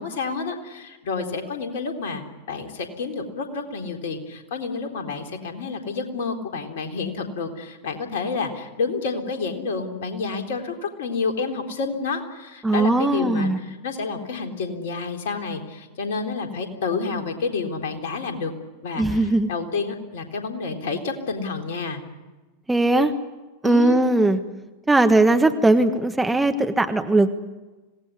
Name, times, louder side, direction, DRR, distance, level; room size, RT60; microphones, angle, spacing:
voice 1, 0.0-18.5 18.8-22.0 23.6-24.0, left 4 dB, 55° left, 4 dB, 3.8 m, -29 dB
voice 2, 12.6-13.6 19.0-19.5 22.7-23.1 23.6-24.4 24.9-27.3, right 2 dB, 5° right, 7 dB, 1.5 m, -19 dB
26.5 x 18.5 x 9.9 m, 1.2 s
figure-of-eight pair, 90°, 0 cm